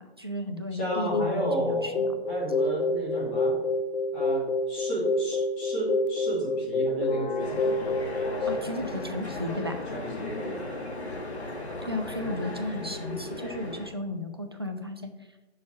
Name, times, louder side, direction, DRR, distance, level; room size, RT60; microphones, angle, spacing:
voice 1, 0.0-2.2 8.5-9.8 11.9-15.1, left 1 dB, 25° right, 5 dB, 0.4 m, -34 dB
voice 2, 0.7-2.0 2.3-3.6 4.1-8.5 9.9-10.6, right 1 dB, 10° left, -4 dB, 0.9 m, -33 dB
sound 1, 0.9-8.6, left 2 dB, 55° left, 0.4 m, -28 dB
sound 2, 7.4-13.9, left 2 dB, 85° left, 1.6 m, -36 dB
6.8 x 6.2 x 3.0 m, 1.0 s
figure-of-eight pair, 155°, 32 cm